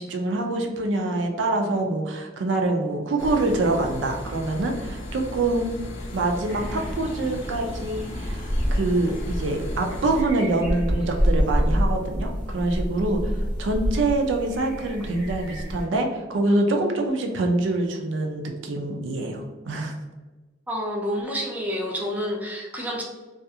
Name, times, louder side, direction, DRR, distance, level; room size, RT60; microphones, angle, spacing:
voice 1, 0.0-5.7 6.1-20.0, right 2 dB, 75° right, 3 dB, 0.4 m, -25 dB
sound 1, 3.2-10.2, left 1 dB, 70° left, 0.4 m, -36 dB
sound 2, 6.5-15.8, equal, 25° left, 0.7 m, -27 dB
voice 2, 20.7-23.0, equal, 10° right, -1 dB, 0.4 m, -29 dB
2.4 x 2.4 x 2.7 m, 1.2 s
head